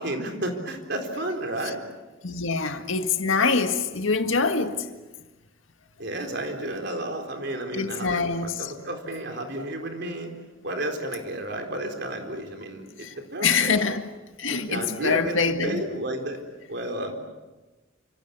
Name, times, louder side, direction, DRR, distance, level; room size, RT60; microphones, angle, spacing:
voice 1, 0.0-1.9 6.0-10.3 10.6-13.8 14.5-16.4 16.7-17.1, right 1 dB, 55° right, 4.1 m, -32 dB
voice 2, 2.2-4.9 7.7-8.7 13.0-13.1 13.4-14.0 14.4-15.8, left 4 dB, 80° left, 1.9 m, -24 dB
29.0 x 26.5 x 7.0 m
head